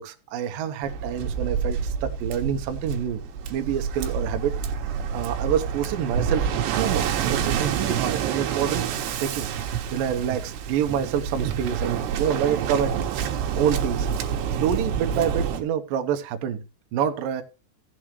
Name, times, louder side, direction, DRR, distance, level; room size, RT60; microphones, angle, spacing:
voice 1, 0.0-3.2 3.5-4.5 5.1-6.5 6.8-8.8 9.2-9.5 9.9-13.1 13.5-14.1 14.5-16.6 16.9-17.4, right 9 dB, 70° right, 6 dB, 2.5 m, -27 dB
Waves surf, 0.8-15.6, right 7 dB, 85° right, 3.3 m, -28 dB
16.0 x 7.6 x 3.1 m, 0.30 s
omnidirectional pair, 4.7 m